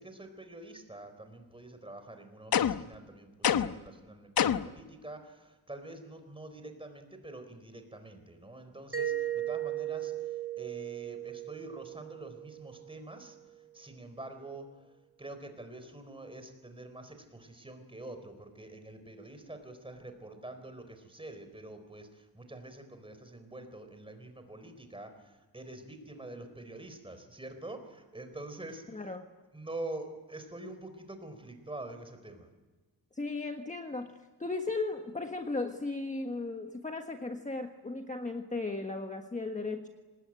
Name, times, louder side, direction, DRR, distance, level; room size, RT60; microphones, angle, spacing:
voice 1, 0.0-14.9 15.2-29.0 29.5-32.5, right 2 dB, 15° right, 8 dB, 4.2 m, -46 dB
sound 1, 2.5-3.0 3.4-3.9 4.4-4.8, left 9 dB, 70° left, 0.9 m, -27 dB
Mallet percussion, 8.9-13.5, right 12 dB, 35° right, 1.4 m, -37 dB
voice 2, 28.9-29.3 33.1-34.1 34.4-39.9, left 3 dB, 20° left, 4 dB, 1.5 m, -36 dB
25.5 x 20.0 x 9.0 m, 1.2 s
wide cardioid pair, 120°, 38 cm